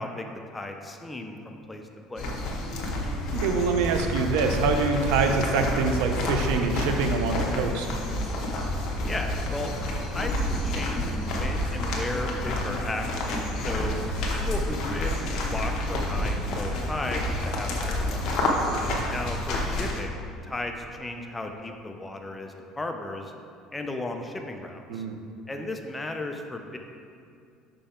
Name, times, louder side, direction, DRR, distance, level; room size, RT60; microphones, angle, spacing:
voice 1, 0.0-2.5 9.0-9.7 10.1-14.0 14.3-18.3 19.1-23.3 23.7-25.0 25.5-26.8, left 2 dB, 10° left, 4 dB, 0.5 m, -35 dB
sound 1, 2.2-20.0, left 1 dB, 55° left, 1.0 m, -29 dB
voice 2, 3.3-7.9 18.7-19.0 24.9-25.2, right 4 dB, 85° right, 5 dB, 0.6 m, -25 dB
5.6 x 5.3 x 4.3 m, 2.4 s
cardioid pair, 140°, 0 cm